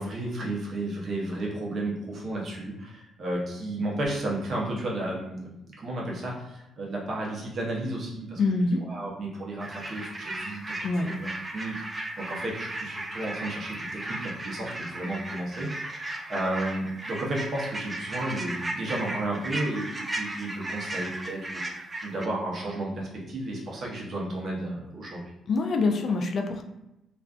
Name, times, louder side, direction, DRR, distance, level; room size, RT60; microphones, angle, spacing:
voice 1, 0.0-25.3, right 1 dB, 55° right, -3 dB, 0.8 m, -33 dB
voice 2, 8.4-8.8 10.8-11.1 25.5-26.6, left 3 dB, 55° left, 4 dB, 0.3 m, -25 dB
sound 1, 9.6-22.3, right 1 dB, 20° right, 0.4 m, -36 dB
2.4 x 2.4 x 2.3 m, 0.90 s
cardioid pair, 90°, 0 cm